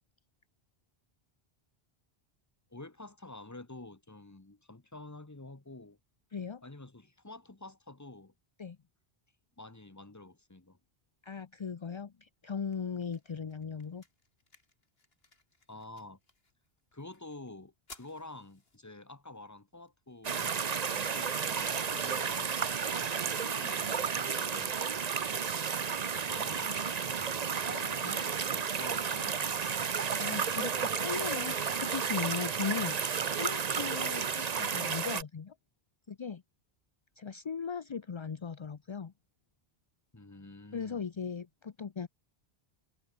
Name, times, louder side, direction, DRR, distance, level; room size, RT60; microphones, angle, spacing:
voice 1, 2.7-6.0 6.6-8.3 9.6-10.8 15.7-16.2 16.9-22.4 24.0-24.8 26.3-26.9 27.7-30.0 40.1-41.0, left 2 dB, 15° left, 1.2 m, -49 dB
voice 2, 6.3-6.6 8.6-8.8 11.2-14.0 22.4-22.5 23.4-23.8 28.0-28.2 30.2-33.0 33.4-35.5 36.1-36.4 37.2-39.1 40.7-42.1, left 6 dB, 35° left, 0.5 m, -38 dB
sound 1, 12.1-24.1, left 2 dB, 70° left, 3.5 m, -63 dB
sound 2, 20.2-35.2, right 6 dB, 45° right, 0.8 m, -32 dB
omnidirectional pair, 1.1 m